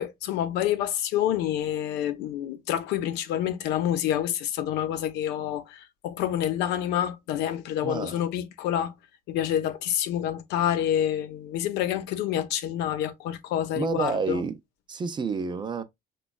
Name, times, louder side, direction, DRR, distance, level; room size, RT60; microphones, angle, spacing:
voice 1, 0.0-8.9 9.3-14.4, left 11 dB, 90° left, 0.6 m, -28 dB
voice 2, 7.8-8.2 13.8-14.5 14.9-15.8, right 5 dB, 25° right, 0.4 m, -29 dB
4.9 x 2.3 x 2.2 m
cardioid pair, 110°, 17 cm